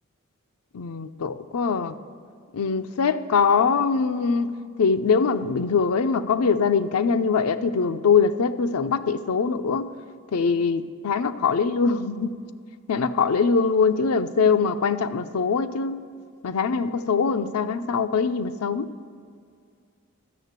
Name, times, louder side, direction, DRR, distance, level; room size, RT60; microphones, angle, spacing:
voice 1, 0.7-1.9 2.5-4.5 4.8-9.9 10.3-12.4 12.9-16.0 16.4-18.9, left 5 dB, 90° left, 9 dB, 0.5 m, -22 dB
12.0 x 6.5 x 8.1 m, 2.1 s
head